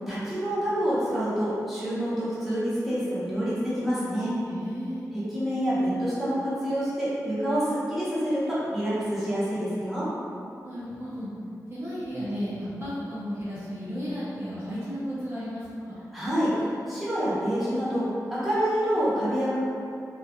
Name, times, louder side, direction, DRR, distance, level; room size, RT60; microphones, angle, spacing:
voice 1, 0.1-4.3 5.1-10.1 16.1-19.6, equal, ahead, -12 dB, 0.7 m, -27 dB
voice 2, 4.5-5.1 10.6-11.3 11.7-16.0, equal, 35° right, -11 dB, 0.5 m, -34 dB
2.3 x 2.1 x 2.7 m, 2.5 s
wide cardioid pair, 155°, 7 cm